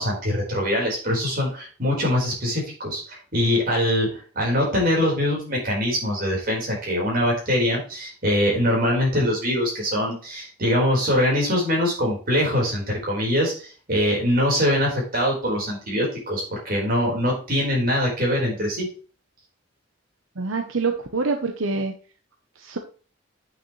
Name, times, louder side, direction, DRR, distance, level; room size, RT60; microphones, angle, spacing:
voice 1, 0.0-18.9, left 1 dB, 45° right, -3 dB, 4.6 m, -23 dB
voice 2, 20.4-21.9 22.6-22.8, right 4 dB, 85° right, 5 dB, 0.9 m, -26 dB
8.7 x 6.7 x 3.2 m, 0.39 s
head